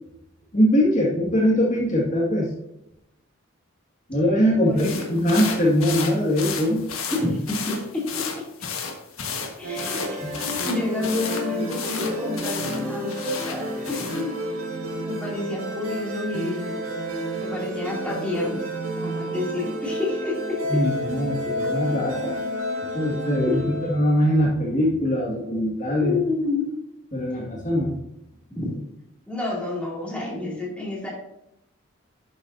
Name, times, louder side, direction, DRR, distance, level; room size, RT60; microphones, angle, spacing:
voice 1, 0.5-2.5 4.1-6.8 10.2-10.3 20.7-22.3 22.9-26.2 27.1-28.0, equal, 35° left, -4 dB, 2.0 m, -22 dB
voice 2, 4.6-5.0 7.1-8.1 9.6-14.3 15.0-16.8 17.4-18.6 19.0-20.6 21.4-21.8 23.4-23.7 26.0-26.8 28.5-28.8 29.3-31.1, left 2 dB, 5° left, -5 dB, 2.6 m, -29 dB
sound 1, 4.8-14.3, left 5 dB, 80° left, 1.4 m, -33 dB
sound 2, 9.6-24.2, equal, 90° right, 1.8 m, -31 dB
11.5 x 7.0 x 2.7 m, 0.85 s
head